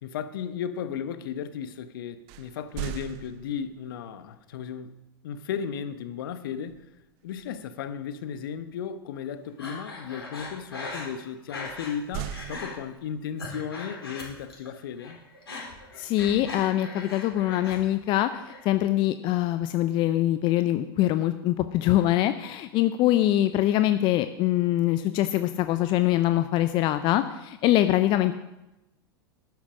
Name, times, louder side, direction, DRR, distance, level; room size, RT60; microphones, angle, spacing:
voice 1, 0.0-5.0 5.2-6.9 7.2-15.2, left 8 dB, 60° left, 1.0 m, -35 dB
sound 1, 2.3-3.9 6.7-7.0 7.4-7.6 11.6-13.3, right 12 dB, 45° right, 0.7 m, -39 dB
Breathing, 9.6-12.0 12.3-12.7 13.2-14.7 15.0-17.8 18.1-18.7, left 3 dB, 80° left, 4.4 m, -39 dB
voice 2, 16.0-28.3, left 14 dB, 40° left, 0.6 m, -24 dB
12.5 x 9.4 x 4.9 m
figure-of-eight pair, 90°, 13 cm